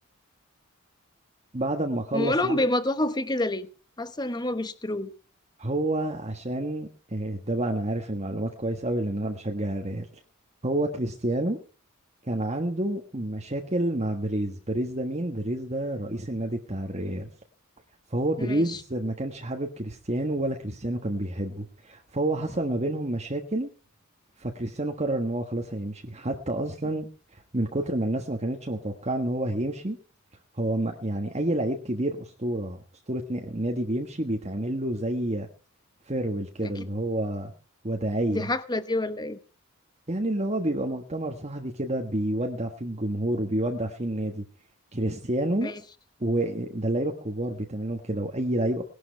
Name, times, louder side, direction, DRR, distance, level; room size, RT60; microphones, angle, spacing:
voice 1, 1.5-2.6 5.6-10.1 10.6-11.6 12.2-17.3 18.1-23.7 24.4-27.1 27.5-30.0 30.5-32.8 33.1-35.5 36.1-37.5 37.8-38.5 40.1-44.4 44.9-45.7 46.2-48.8, right 1 dB, 30° right, 1.4 m, -29 dB
voice 2, 2.1-3.7 4.0-5.1 18.4-18.8 36.6-36.7 38.3-39.4 45.6-45.8, left 1 dB, 20° left, 1.0 m, -28 dB
18.5 x 12.0 x 4.6 m
head